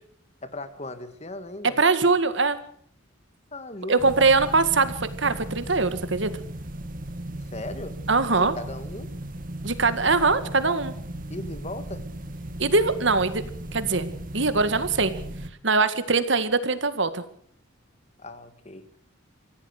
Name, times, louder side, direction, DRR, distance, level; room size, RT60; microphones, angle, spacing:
voice 1, 0.4-1.8 3.5-4.5 7.4-8.0 8.3-9.1 11.3-12.1 18.2-18.9, left 2 dB, 35° left, 11 dB, 1.9 m, -38 dB
voice 2, 1.8-2.6 3.9-6.3 8.1-8.6 9.6-10.9 12.6-13.4 13.7-14.1 14.3-15.1 15.6-17.2, right 3 dB, 60° right, 12 dB, 1.9 m, -22 dB
sound 1, 4.0-15.5, right 1 dB, 45° right, 2.0 m, -36 dB
25.0 x 16.0 x 6.6 m, 0.64 s
head